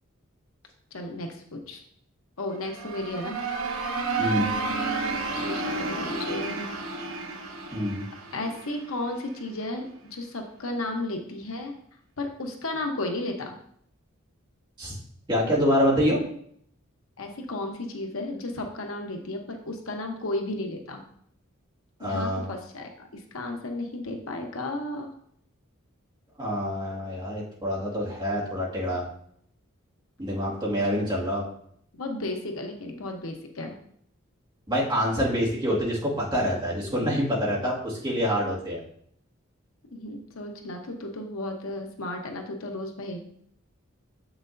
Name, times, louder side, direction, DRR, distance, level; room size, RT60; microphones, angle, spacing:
voice 1, 0.9-1.8 2.4-3.4 4.4-6.7 8.3-11.7 12.2-13.5 17.2-21.0 22.0-25.1 31.9-33.8 39.9-43.2, left 2 dB, 75° left, 3 dB, 0.9 m, -34 dB
sound 1, 2.5-9.3, right 3 dB, 85° right, 1.0 m, -31 dB
voice 2, 7.7-8.0 14.8-15.0 15.3-16.2 22.0-22.5 26.4-29.0 30.2-31.4 34.7-38.8, equal, 25° right, -6 dB, 2.0 m, -26 dB
7.5 x 6.0 x 2.6 m, 0.66 s
head